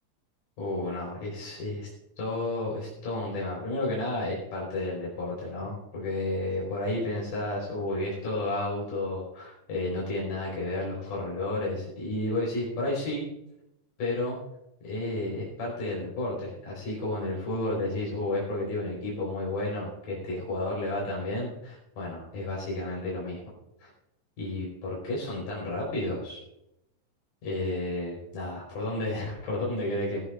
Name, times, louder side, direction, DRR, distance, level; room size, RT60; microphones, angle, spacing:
voice 1, 0.6-1.9 2.2-13.3 14.0-14.4 14.8-23.4 23.8-23.9 24.4-26.4 27.4-30.2, left 2 dB, 85° left, -4 dB, 6.0 m, -32 dB
19.0 x 14.5 x 2.5 m, 0.83 s
omnidirectional pair, 3.7 m